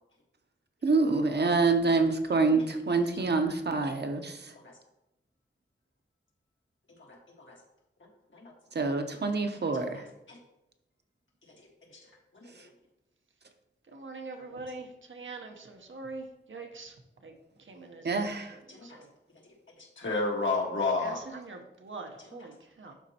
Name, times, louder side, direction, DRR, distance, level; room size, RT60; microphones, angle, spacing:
voice 1, 0.8-4.5 8.7-10.1 12.6-12.7 18.0-18.6, right 3 dB, 60° right, 6 dB, 0.8 m, -26 dB
voice 2, 13.9-16.9 17.2-17.3 17.6-18.3 18.8-19.1 21.0-22.9, right 3 dB, 90° right, 3 dB, 0.9 m, -44 dB
voice 3, 19.8-21.2, left 3 dB, 80° left, -1 dB, 1.5 m, -31 dB
11.5 x 4.1 x 2.9 m, 0.88 s
wide cardioid pair, 80°, 20 cm